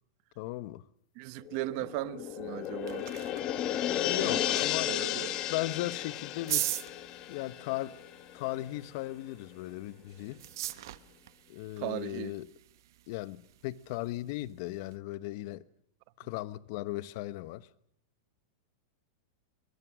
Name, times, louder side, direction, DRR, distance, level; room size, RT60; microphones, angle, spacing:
voice 1, 0.4-0.8 3.9-6.7 7.3-8.0 8.3-10.4 11.5-12.5 13.1-15.6 16.2-17.7, left 17 dB, 50° left, 1.2 m, -37 dB
voice 2, 1.2-3.1 4.2-4.4 4.8-5.4 11.8-12.4, right 19 dB, 45° right, 1.1 m, -37 dB
sound 1, 1.5-8.4 8.8-8.9, left 12 dB, 30° left, 1.7 m, -34 dB
sound 2, 2.4-15.0, right 14 dB, 65° right, 1.2 m, -42 dB
23.5 x 21.5 x 6.3 m
supercardioid pair, 150°, 2 cm